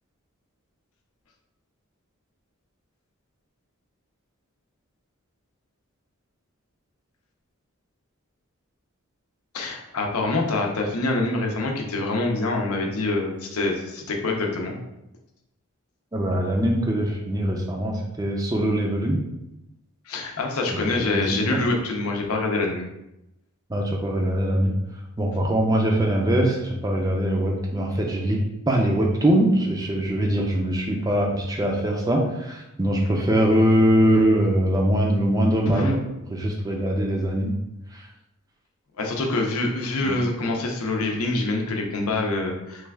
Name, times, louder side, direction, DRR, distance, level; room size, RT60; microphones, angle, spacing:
voice 1, 9.5-14.8 20.1-22.9 35.7-35.9 39.0-42.9, left 2 dB, 80° left, 1 dB, 0.6 m, -25 dB
voice 2, 16.1-19.2 20.7-21.6 23.7-24.7 25.2-28.4 28.7-36.0 36.3-37.5 37.9-38.0 40.0-40.2, right 1 dB, 15° right, 0 dB, 0.4 m, -22 dB
3.1 x 2.3 x 3.4 m, 0.88 s
head